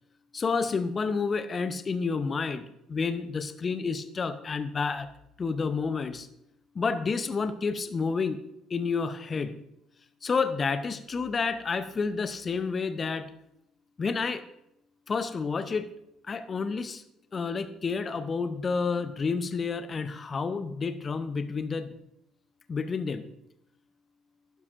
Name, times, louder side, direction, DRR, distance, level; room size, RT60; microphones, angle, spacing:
voice 1, 0.3-5.1 5.4-6.3 6.7-8.4 8.7-9.6 10.2-13.3 14.0-14.4 15.1-15.9 16.3-17.0 17.3-22.0 22.7-23.3, left 4 dB, 35° left, 12 dB, 0.7 m, -30 dB
12.0 x 10.5 x 2.6 m, 0.81 s
hypercardioid pair, 55°, 0 cm